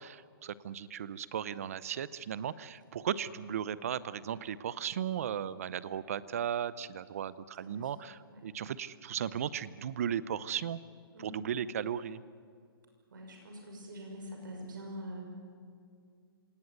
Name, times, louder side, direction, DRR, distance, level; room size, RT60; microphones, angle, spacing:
voice 1, 0.0-10.8 11.2-12.2, right 9 dB, 40° right, 18 dB, 0.7 m, -36 dB
voice 2, 7.6-8.0 8.3-8.4 11.1-11.5 13.1-15.2, equal, 55° right, 2 dB, 6.2 m, -45 dB
26.5 x 18.0 x 9.4 m, 2.3 s
hypercardioid pair, 170°, 13 cm